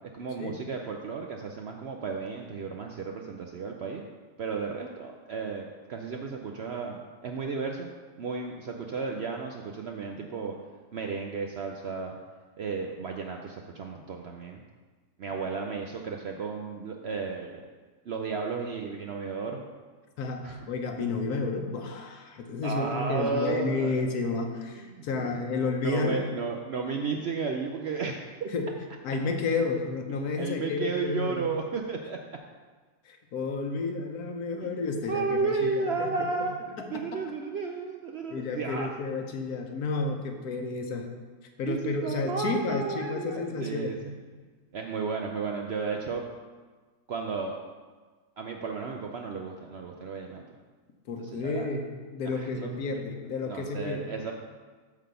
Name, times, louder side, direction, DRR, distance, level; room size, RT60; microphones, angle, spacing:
voice 1, 0.1-4.0 4.4-7.9 8.2-10.5 10.9-12.2 12.6-14.6 15.2-17.7 18.1-19.6 20.4-20.7 22.6-24.0 24.8-25.3 25.8-28.5 30.4-32.2 35.1-36.6 36.9-38.9 41.7-44.0 44.7-46.2 47.1-47.6 48.4-50.4 51.3-51.7 52.2-52.7 53.4-54.3, right 4 dB, 65° right, 2 dB, 0.6 m, -33 dB
voice 2, 20.2-26.2 28.5-28.7 29.0-31.4 33.0-36.3 36.8-37.2 38.3-41.1 41.6-43.9 51.1-51.8 52.1-54.1, left 3 dB, 75° left, 4 dB, 1.4 m, -31 dB
8.2 x 3.9 x 6.7 m, 1.4 s
omnidirectional pair, 1.6 m